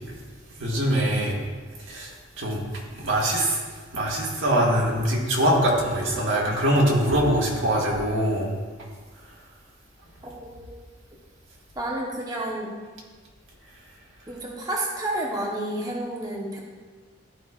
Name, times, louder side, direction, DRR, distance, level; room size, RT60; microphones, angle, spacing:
voice 1, 0.6-1.4 1.9-2.1 2.4-2.6 3.0-3.6 3.9-8.5, right 1 dB, 90° right, -3 dB, 1.6 m, -23 dB
voice 2, 10.2-10.7 11.8-12.7 14.3-16.6, right 1 dB, 20° right, -3 dB, 0.9 m, -30 dB
12.5 x 5.2 x 2.4 m, 1.5 s
head